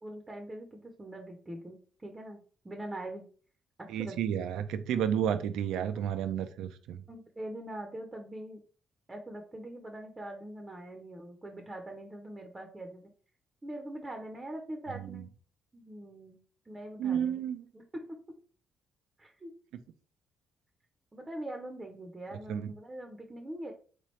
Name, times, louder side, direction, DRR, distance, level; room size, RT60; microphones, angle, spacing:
voice 1, 0.0-3.2 3.8-4.2 7.1-8.6 9.1-13.1 13.6-15.3 15.7-16.4 16.7-17.4 17.7-18.2 19.2-19.5 21.1-23.7, right 1 dB, 20° right, 0.6 m, -43 dB
voice 2, 3.9-7.0 15.1-15.2 17.0-17.6 22.5-22.7, right 9 dB, 85° right, 0.3 m, -31 dB
3.7 x 2.9 x 3.1 m
cardioid pair, 90°, 0 cm